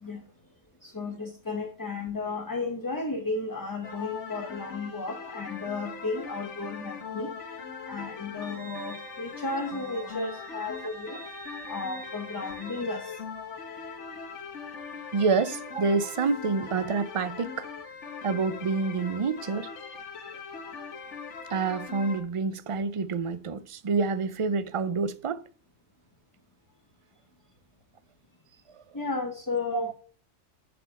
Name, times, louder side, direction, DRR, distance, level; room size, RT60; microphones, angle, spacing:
voice 1, 0.8-7.3 7.9-11.2 11.7-13.2 28.9-29.9, left 3 dB, 20° left, 0.9 m, -33 dB
sound 1, 3.8-22.2, left 5 dB, 85° left, 1.4 m, -41 dB
Wind instrument woodwind instrument, 8.4-12.9, right 6 dB, 65° right, 1.2 m, -48 dB
voice 2, 15.1-17.7 18.2-19.7 21.5-25.4 28.7-28.8 29.7-29.9, right 4 dB, 45° right, 0.4 m, -28 dB
11.0 x 4.3 x 4.0 m
omnidirectional pair, 1.2 m